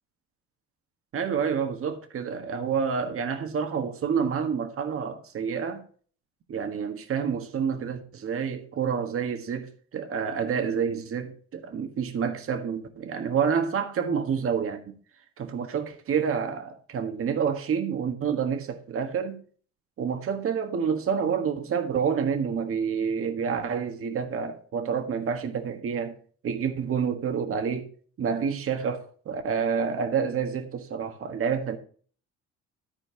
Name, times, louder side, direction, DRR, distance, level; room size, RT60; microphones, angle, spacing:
voice 1, 1.1-5.8 6.5-14.9 15.4-19.4 20.0-26.1 26.4-27.9 28.2-31.8, right 6 dB, 50° right, 1.6 m, -28 dB
13.5 x 4.5 x 5.7 m
cardioid pair, 115°, 29 cm